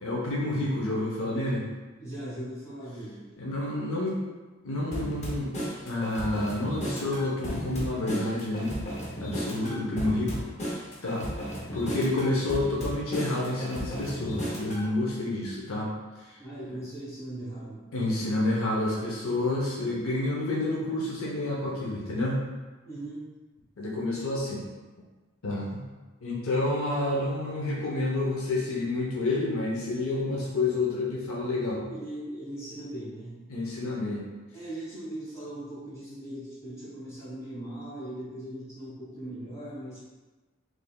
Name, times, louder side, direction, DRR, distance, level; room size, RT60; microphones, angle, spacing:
voice 1, 0.0-1.6 3.4-4.2 4.6-5.5 5.9-8.7 9.2-10.4 11.0-11.3 11.7-15.9 16.2-16.4 17.9-22.5 23.8-24.6 25.4-25.8 26.2-31.9 33.5-34.2, left 2 dB, 80° left, -4 dB, 0.7 m, -29 dB
voice 2, 2.0-3.2 9.5-9.9 16.4-17.8 22.8-23.3 31.9-33.4 34.5-40.0, right 1 dB, 15° left, -9 dB, 1.2 m, -39 dB
sound 1, 4.9-14.9, equal, 35° left, 0.6 m, -35 dB
3.5 x 3.1 x 2.2 m, 1.2 s
head